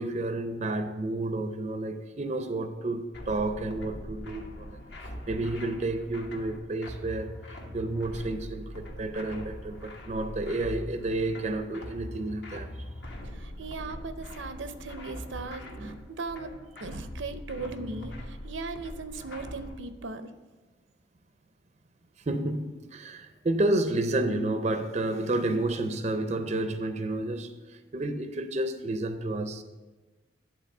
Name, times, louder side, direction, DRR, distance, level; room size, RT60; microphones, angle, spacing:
voice 1, 0.0-4.8 5.3-12.7 15.8-16.0 17.5-17.7 22.3-29.6, right 2 dB, 35° right, 0.4 m, -31 dB
sound 1, 3.1-19.7, left 1 dB, 65° left, 1.3 m, -42 dB
voice 2, 13.2-16.5 16.8-20.3, right 3 dB, 85° right, 0.6 m, -38 dB
10.5 x 3.9 x 5.3 m
head